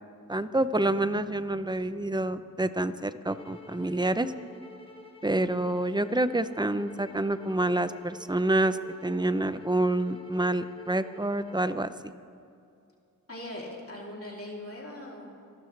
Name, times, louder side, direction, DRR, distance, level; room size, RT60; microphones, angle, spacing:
voice 1, 0.3-4.3 5.2-12.1, right 1 dB, 15° right, 12 dB, 0.6 m, -28 dB
sound 1, 3.3-11.6, left 1 dB, 15° left, 1.8 m, -49 dB
voice 2, 13.3-15.5, left 1 dB, 40° left, -3 dB, 3.2 m, -40 dB
27.0 x 12.5 x 3.3 m, 2.4 s
wide cardioid pair, 65°, 34 cm